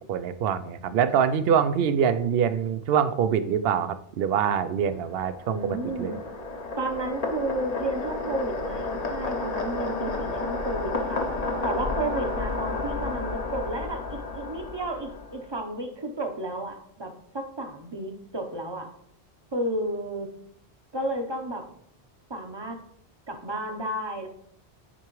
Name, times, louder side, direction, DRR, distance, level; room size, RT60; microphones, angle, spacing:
voice 1, 0.1-5.6 5.8-6.2, right 8 dB, 65° right, 12 dB, 0.7 m, -24 dB
sound 1, 4.8-15.5, left 3 dB, 40° left, 0.9 m, -31 dB
voice 2, 5.5-6.2 6.8-11.2 11.6-18.9 19.5-20.3 20.9-21.6 22.3-22.8 23.3-24.3, right 1 dB, 25° right, 4 dB, 0.8 m, -32 dB
10.0 x 4.7 x 3.1 m, 0.68 s
omnidirectional pair, 1.2 m